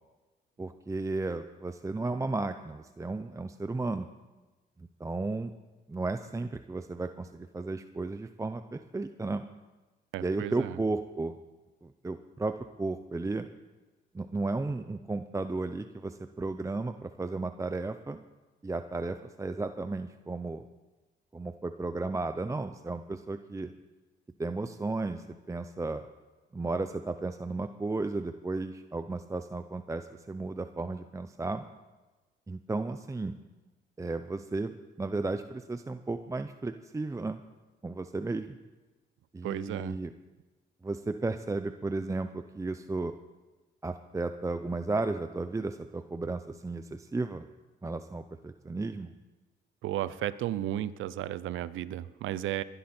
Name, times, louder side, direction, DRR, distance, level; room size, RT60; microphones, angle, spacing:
voice 1, 0.6-4.1 4.8-5.5 5.9-9.4 10.2-11.3 11.8-13.5 14.1-18.2 18.6-20.6 21.3-23.7 24.4-26.0 26.5-31.6 32.5-33.4 34.0-37.4 37.8-38.6 39.3-40.1 40.8-43.1 43.8-47.4 47.8-49.1, right 3 dB, 15° right, 9 dB, 0.6 m, -34 dB
voice 2, 10.1-10.8 39.4-40.0 49.8-52.6, right 12 dB, 80° right, 17 dB, 0.6 m, -34 dB
21.5 x 12.0 x 4.4 m, 1.2 s
cardioid pair, 90°, 20 cm